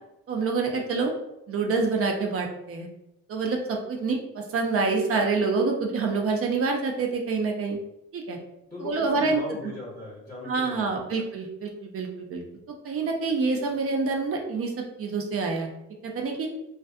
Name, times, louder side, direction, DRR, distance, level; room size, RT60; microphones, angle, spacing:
voice 1, 0.3-1.1 1.5-2.9 3.3-7.8 8.1-8.4 8.8-9.4 10.4-12.4 12.8-14.7 15.0-15.7 16.0-16.5, right 4 dB, 50° right, 2 dB, 0.6 m, -27 dB
voice 2, 8.7-11.2, left 1 dB, 10° left, -5 dB, 0.8 m, -38 dB
2.5 x 2.5 x 2.4 m, 0.87 s
cardioid pair, 90°, 30 cm